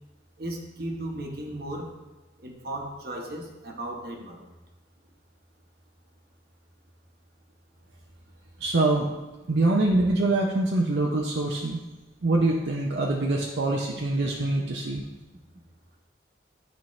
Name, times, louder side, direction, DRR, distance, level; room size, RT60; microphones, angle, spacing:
voice 1, 0.4-1.9 2.4-4.5, right 1 dB, 60° right, 2 dB, 1.2 m, -36 dB
voice 2, 8.6-9.1 9.5-11.8 12.2-15.0, right 2 dB, 75° right, -1 dB, 0.7 m, -24 dB
12.0 x 4.6 x 3.2 m, 1.1 s
head